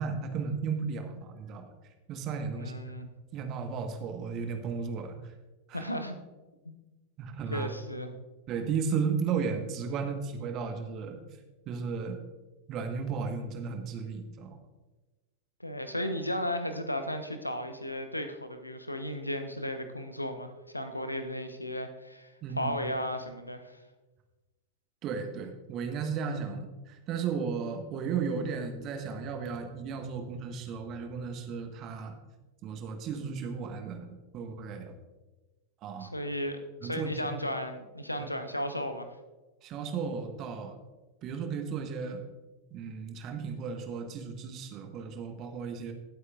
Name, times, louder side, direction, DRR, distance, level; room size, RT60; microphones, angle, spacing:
voice 1, 0.0-1.7 2.1-2.7 3.0-5.3 5.7-5.9 7.2-7.7 8.5-11.2 11.7-12.2 12.7-14.6 22.4-22.9 25.0-32.1 32.6-34.1 34.3-34.9 35.8-36.1 36.8-37.4 38.2-38.3 39.6-40.8 41.2-42.2 42.7-45.9, right 5 dB, 35° right, 6 dB, 1.3 m, -34 dB
voice 2, 2.5-3.1 5.7-6.2 6.6-6.8 7.5-8.2 15.6-23.8 36.0-39.1, left 1 dB, 85° left, 8 dB, 0.9 m, -35 dB
17.5 x 8.1 x 2.5 m, 1.1 s
figure-of-eight pair, 90°, 0 cm